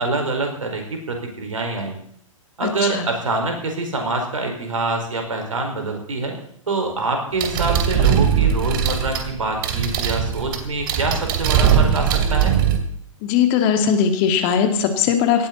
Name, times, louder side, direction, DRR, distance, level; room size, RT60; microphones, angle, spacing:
voice 1, 0.0-1.9 2.6-6.3 6.7-12.5, right 3 dB, 75° right, 3 dB, 4.9 m, -25 dB
voice 2, 2.6-3.0 13.2-15.5, left 7 dB, 35° left, 7 dB, 2.2 m, -19 dB
sound 1, 7.4-12.8, right 8 dB, 40° right, 2.3 m, -20 dB
18.0 x 13.5 x 4.2 m, 0.67 s
figure-of-eight pair, 115°, 17 cm